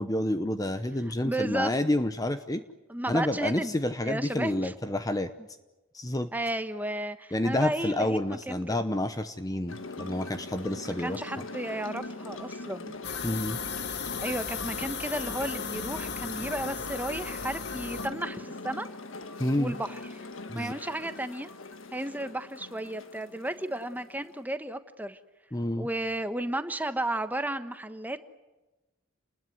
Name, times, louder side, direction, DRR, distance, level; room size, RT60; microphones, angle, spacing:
voice 1, 0.0-2.6 3.1-5.3 5.9-6.3 7.3-11.2 13.2-13.6 19.4-19.8 20.5-20.7 25.5-25.9, left 1 dB, 20° left, 10 dB, 0.9 m, -29 dB
voice 2, 1.2-1.8 2.9-3.8 4.0-4.7 6.3-8.8 10.8-13.0 14.2-18.9 19.6-20.0 20.5-21.5 21.9-25.2 25.8-28.2, right 1 dB, 10° right, 10 dB, 1.2 m, -33 dB
sound 1, 9.7-24.4, left 2 dB, 75° left, 1.7 m, -41 dB
sound 2, 13.0-18.1, left 6 dB, 55° left, 1.9 m, -36 dB
29.5 x 20.5 x 9.4 m, 1.1 s
head